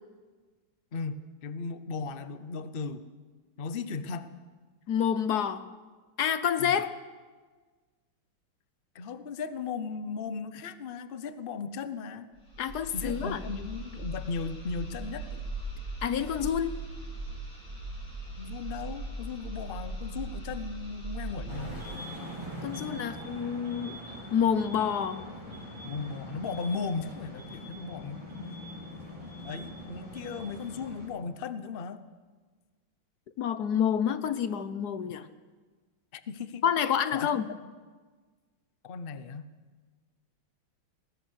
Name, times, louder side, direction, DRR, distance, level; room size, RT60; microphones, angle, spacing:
voice 1, 0.9-3.0 3.6-4.3 6.6-6.8 8.9-12.3 12.9-15.4 18.4-21.8 25.8-28.7 29.4-32.0 35.1-35.2 36.1-36.6 37.1-37.4 38.8-39.5, left 5 dB, 40° left, 12 dB, 0.8 m, -37 dB
voice 2, 4.9-5.6 6.2-6.9 12.6-13.4 16.0-16.7 22.6-24.0 24.3-25.2 33.4-35.3 36.6-37.5, left 8 dB, 60° left, 13 dB, 1.2 m, -28 dB
sound 1, 12.3-22.0, right 2 dB, 40° right, 7.6 m, -39 dB
sound 2, 21.5-31.1, equal, 15° right, 5.7 m, -42 dB
22.0 x 20.0 x 6.4 m, 1.4 s
omnidirectional pair, 2.2 m